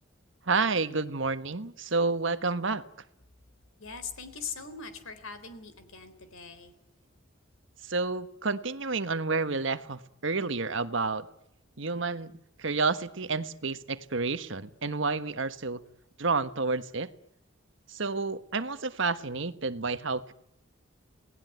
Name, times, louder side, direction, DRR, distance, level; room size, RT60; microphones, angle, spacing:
voice 1, 0.5-2.8 7.8-11.3 11.8-12.3 12.6-15.8 16.2-17.1 17.9-20.3, right 4 dB, 65° right, 11 dB, 1.3 m, -30 dB
voice 2, 3.8-6.7, left 5 dB, 80° left, 11 dB, 3.9 m, -41 dB
28.5 x 18.5 x 9.3 m, 0.77 s
head